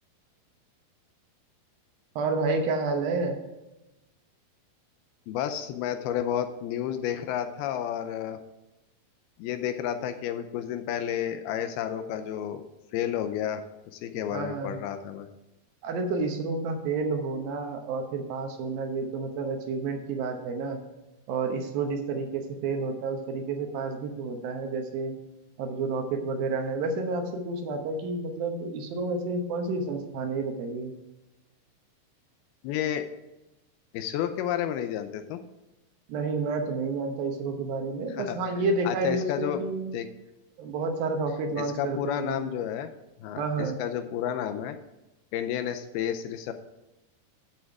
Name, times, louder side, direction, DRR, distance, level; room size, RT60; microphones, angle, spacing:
voice 1, 2.2-3.4 14.3-14.8 15.8-20.8 21.3-25.1 25.6-30.9 36.1-39.9 40.6-42.5 43.4-43.8, right 3 dB, 70° right, 4 dB, 2.6 m, -30 dB
voice 2, 5.3-8.4 9.4-12.6 12.9-15.3 32.6-33.1 33.9-35.4 38.1-38.4 38.9-39.6 39.9-40.1 41.6-42.9 43.2-44.8 45.3-46.5, left 10 dB, 80° left, 9 dB, 2.5 m, -31 dB
8.8 x 8.0 x 4.7 m, 1.0 s
omnidirectional pair, 4.7 m